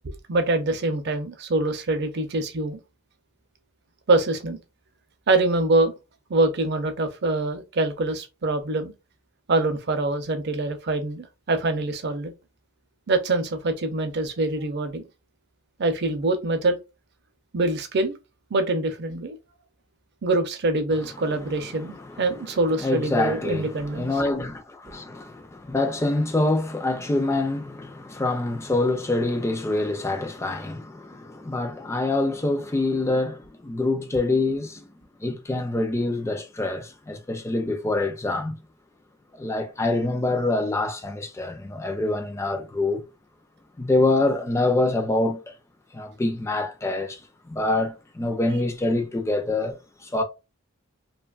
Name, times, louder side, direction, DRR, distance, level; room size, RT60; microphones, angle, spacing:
voice 1, 0.0-2.8 4.1-4.6 5.3-5.9 6.3-8.9 9.5-12.3 13.1-15.1 15.8-16.8 17.5-18.1 18.5-19.4 20.2-24.1, right 2 dB, 50° right, 0.5 m, -24 dB
voice 2, 21.3-22.5 22.8-34.9 35.2-38.6 39.3-43.0 43.8-45.5 45.9-50.2, left 2 dB, 15° left, 0.3 m, -26 dB
2.8 x 2.2 x 2.3 m
head